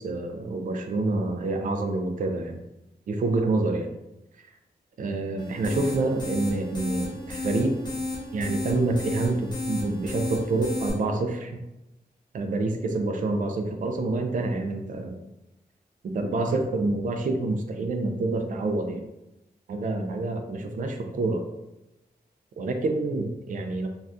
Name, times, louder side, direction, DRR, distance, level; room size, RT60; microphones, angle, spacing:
voice 1, 0.0-2.6 3.1-3.9 4.4-4.5 5.0-7.7 8.3-11.6 12.3-15.2 16.1-19.0 19.7-21.4 22.6-23.9, right 2 dB, 55° right, 4 dB, 0.4 m, -27 dB
sound 1, 5.4-10.9, left 2 dB, 25° left, 0.8 m, -33 dB
2.6 x 2.3 x 3.4 m, 0.93 s
wide cardioid pair, 150°, 16 cm